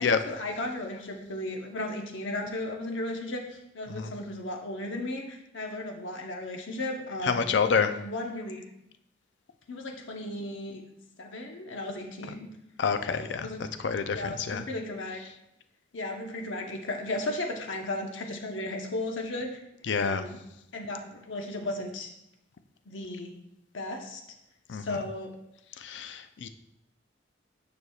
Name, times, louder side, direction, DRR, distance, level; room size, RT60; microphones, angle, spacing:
voice 1, 0.0-7.6 7.9-8.6 9.7-10.8 11.2-12.5 13.1-13.7 14.1-15.2 15.9-19.6 20.0-20.4 20.7-22.1 22.9-23.3 23.7-24.2 24.8-25.3, left 1 dB, 85° left, 2 dB, 1.0 m, -35 dB
voice 2, 7.2-7.9 12.8-13.5 13.8-14.6 19.9-20.2 24.7-25.0 25.8-26.5, left 5 dB, 65° left, 9 dB, 0.5 m, -28 dB
9.6 x 6.2 x 2.4 m, 0.82 s
head